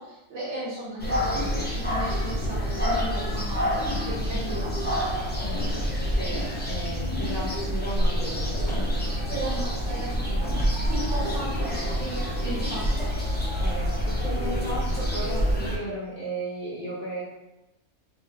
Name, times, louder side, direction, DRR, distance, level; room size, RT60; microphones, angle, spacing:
voice 1, 0.0-1.4 1.7-5.1 9.3-10.6 10.9-13.1 14.2-14.4, right 1 dB, 55° right, -9 dB, 1.7 m, -36 dB
sound 1, 1.0-15.8, equal, 15° left, 0.3 m, -27 dB
voice 2, 5.4-8.9 10.2-10.7 11.2-11.5 11.7-12.0 13.6-17.2, right 1 dB, 45° left, -7 dB, 0.9 m, -35 dB
4.7 x 2.4 x 2.6 m, 0.97 s
omnidirectional pair, 1.5 m